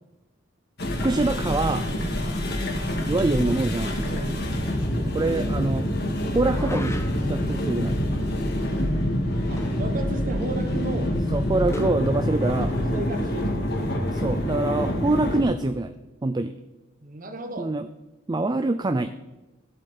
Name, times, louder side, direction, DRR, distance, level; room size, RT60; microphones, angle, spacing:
sound 1, 0.8-15.4, left 1 dB, 55° left, 2.2 m, -26 dB
voice 1, 1.0-1.9 3.0-4.0 5.1-5.9 6.2-8.0 11.3-12.7 14.1-15.9 16.2-16.5 17.6-17.9 18.3-19.1, right 2 dB, 20° right, 10 dB, 0.3 m, -25 dB
voice 2, 4.0-4.4 9.5-11.1 12.6-13.7 17.0-17.7, right 2 dB, 40° right, 8 dB, 1.1 m, -34 dB
sound 2, 6.4-7.4 9.6-9.9 10.2-10.3 11.7-12.1, left 1 dB, 15° left, 0.8 m, -36 dB
14.5 x 8.1 x 4.3 m, 1.1 s
head